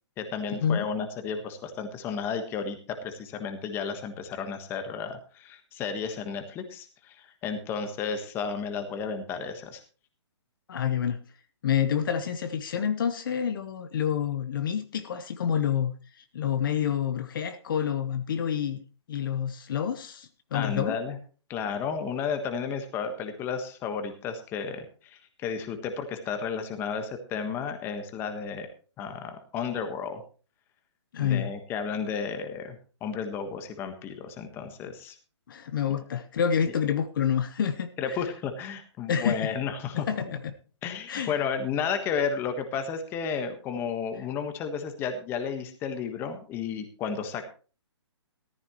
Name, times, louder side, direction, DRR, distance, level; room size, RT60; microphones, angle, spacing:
voice 1, 0.2-9.8 20.5-21.2 21.5-28.7 29.0-30.2 31.2-35.2 38.0-40.2 40.8-47.4, left 6 dB, 15° left, 7 dB, 1.4 m, -33 dB
voice 2, 10.7-11.2 11.6-18.8 19.1-21.0 31.1-31.5 35.5-37.9 39.1-39.5 40.1-40.3 41.1-41.3, left 8 dB, 45° left, 10 dB, 1.1 m, -28 dB
14.5 x 14.0 x 3.1 m, 0.37 s
hypercardioid pair, 165°, 15 cm